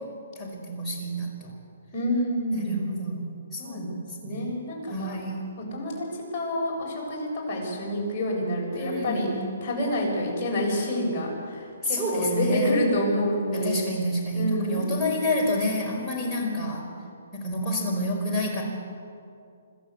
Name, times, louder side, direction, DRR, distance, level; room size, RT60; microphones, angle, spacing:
voice 1, 0.0-1.6 2.5-4.5 4.9-5.6 8.7-9.5 11.8-12.8 13.5-16.9 17.3-18.6, left 1 dB, 5° left, -4 dB, 5.0 m, -29 dB
voice 2, 1.9-3.0 3.6-3.9 4.2-5.2 5.7-9.3 9.6-13.9 14.4-15.0 16.2-16.6, equal, 25° left, -4 dB, 7.7 m, -28 dB
26.0 x 13.0 x 8.3 m, 2.4 s
hypercardioid pair, 155°, 0 cm